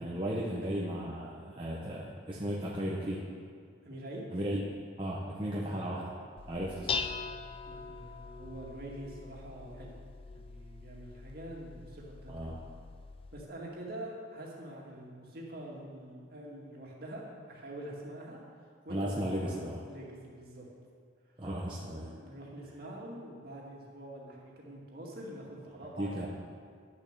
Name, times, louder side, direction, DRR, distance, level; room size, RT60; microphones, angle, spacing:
voice 1, 0.0-3.2 4.3-4.6 5.0-6.1 6.5-7.1 12.3-12.6 18.9-19.8 21.4-22.1 26.0-26.3, equal, 25° right, -5 dB, 1.0 m, -35 dB
voice 2, 3.8-4.3 5.6-5.8 7.7-9.9 10.3-12.6 13.3-20.7 22.1-26.3, right 1 dB, 50° right, -3 dB, 2.2 m, -45 dB
Dishes pots and pans, 6.4-13.4, left 5 dB, 30° left, 0.3 m, -42 dB
11.0 x 7.1 x 6.8 m, 2.1 s
head